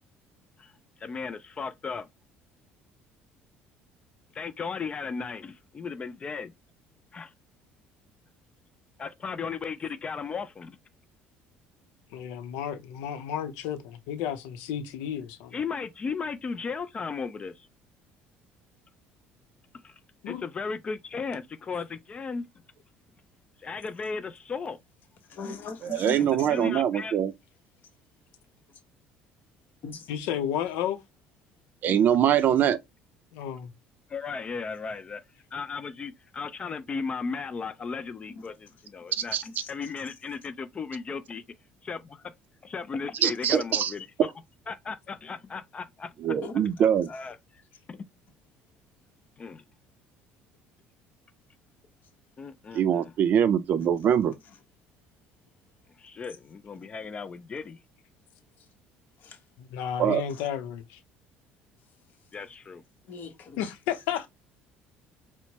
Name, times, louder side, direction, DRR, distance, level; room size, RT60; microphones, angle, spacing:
voice 1, 1.0-2.1 4.3-6.5 7.1-7.3 9.0-10.8 15.5-17.7 19.7-19.9 20.3-22.5 23.6-24.8 26.2-27.2 34.1-35.2 35.5-39.4 39.7-41.4 41.8-42.3 42.6-44.3 44.7-46.1 47.1-47.6 47.9-48.1 49.4-49.6 52.4-53.1 56.0-57.8 62.3-62.8, left 5 dB, 30° left, 0.4 m, -36 dB
voice 2, 12.1-15.5 20.2-20.4 30.1-31.0 33.3-33.7 59.6-61.0 63.6-64.3, left 9 dB, 85° left, 0.6 m, -32 dB
voice 3, 25.3-26.7 28.7-28.8 29.8-30.1 31.9-32.0 39.4-39.7 46.4-46.7 54.5-54.6 56.7-56.9 59.2-59.4 60.3-60.5 63.1-63.7, left 4 dB, 50° left, 1.1 m, -41 dB
voice 4, 25.8-27.3 31.8-32.8 39.3-39.4 43.2-43.9 46.2-47.1 52.7-54.3 60.0-60.2, right 9 dB, 50° right, 0.5 m, -23 dB
4.3 x 2.1 x 2.9 m
cardioid pair, 115°, 4 cm